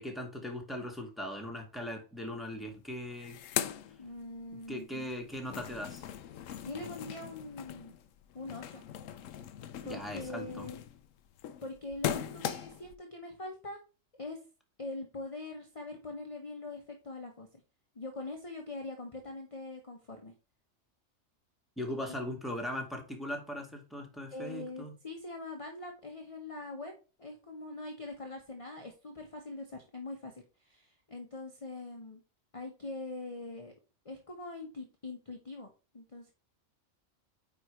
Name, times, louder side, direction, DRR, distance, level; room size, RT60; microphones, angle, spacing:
voice 1, 0.0-3.4 4.7-6.1 9.8-10.7 21.8-24.9, left 1 dB, ahead, 2 dB, 1.9 m, -39 dB
sound 1, 2.5-2.6 2.9-4.7 5.0-12.9, left 10 dB, 75° left, 1.0 m, -40 dB
voice 2, 4.0-5.1 6.6-7.9 8.3-8.8 9.8-10.8 11.6-13.8 14.2-14.4 14.8-17.6 17.9-20.3 22.0-22.1 24.3-26.9 27.2-32.2 32.5-33.7 34.0-36.3, left 2 dB, 25° left, 3 dB, 1.2 m, -43 dB
9.2 x 4.8 x 3.2 m, 0.33 s
omnidirectional pair, 1.4 m